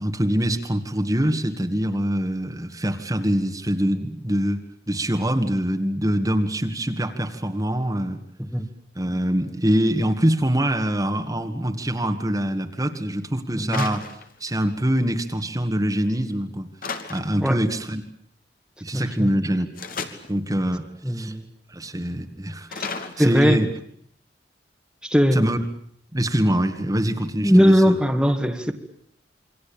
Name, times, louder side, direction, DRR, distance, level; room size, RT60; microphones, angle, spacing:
voice 1, 0.0-8.2 9.0-16.7 17.1-18.0 18.8-19.7 20.3-21.4 21.7-22.7 23.2-23.7 25.3-25.6 26.1-27.9, equal, 20° right, 6 dB, 1.9 m, -24 dB
sound 1, 13.7-14.9 16.8-17.5 19.7-20.4 22.7-23.8, left 4 dB, 55° left, 2.8 m, -34 dB
voice 2, 18.9-19.3 21.0-21.4 22.7-22.9 23.2-23.6 25.0-25.4 27.4-28.7, equal, 5° right, 5 dB, 1.9 m, -19 dB
28.0 x 24.0 x 8.8 m, 0.63 s
head